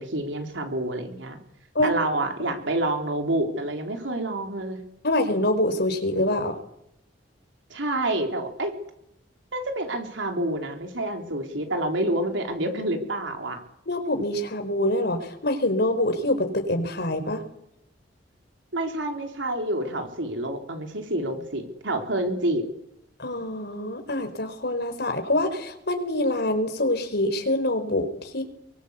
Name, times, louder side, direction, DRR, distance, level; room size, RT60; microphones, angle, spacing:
voice 1, 0.0-1.4 1.8-4.8 7.7-8.7 9.5-13.6 18.7-22.6, right 1 dB, 85° right, 4 dB, 3.9 m, -28 dB
voice 2, 5.0-6.6 13.9-17.4 23.2-28.4, left 1 dB, 60° left, 6 dB, 4.5 m, -25 dB
25.5 x 23.0 x 8.3 m, 0.79 s
head